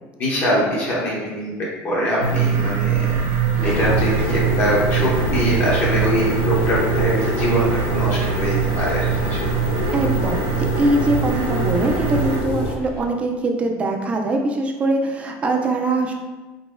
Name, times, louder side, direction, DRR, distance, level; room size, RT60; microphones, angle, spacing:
voice 1, 0.2-3.2 3.6-9.4, equal, 35° left, -5 dB, 0.8 m, -23 dB
sound 1, 2.2-12.4, right 8 dB, 75° right, 0.7 m, -23 dB
Subway metro underground, 3.0-13.0, left 1 dB, 55° left, 1.1 m, -32 dB
sound 2, 3.7-12.8, left 3 dB, 90° left, 0.5 m, -27 dB
voice 2, 9.9-16.1, right 2 dB, 20° right, 3 dB, 0.4 m, -22 dB
3.9 x 3.7 x 2.5 m, 1.2 s
cardioid pair, 170°, 6 cm